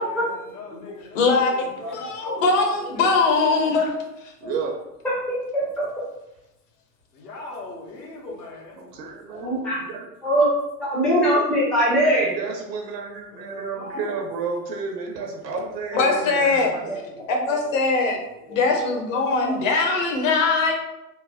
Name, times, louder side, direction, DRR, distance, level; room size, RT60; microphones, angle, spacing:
voice 1, 0.0-3.5 7.1-8.8 13.3-14.2, left 2 dB, 80° left, -2 dB, 1.0 m, -40 dB
voice 2, 1.1-3.9 15.9-16.7 17.3-18.2 18.5-20.7, left 4 dB, 55° left, 1 dB, 0.8 m, -21 dB
voice 3, 1.8-2.3 4.4-4.5 5.3-5.8 9.3-9.8 10.2-10.5 10.8-12.3 18.0-18.1 19.1-19.6, right 1 dB, ahead, -8 dB, 0.3 m, -22 dB
voice 4, 4.4-4.8 8.8-10.1 12.1-16.9, right 4 dB, 80° right, 2 dB, 0.8 m, -32 dB
3.2 x 2.0 x 2.3 m, 0.91 s
hypercardioid pair, 105°, 48 cm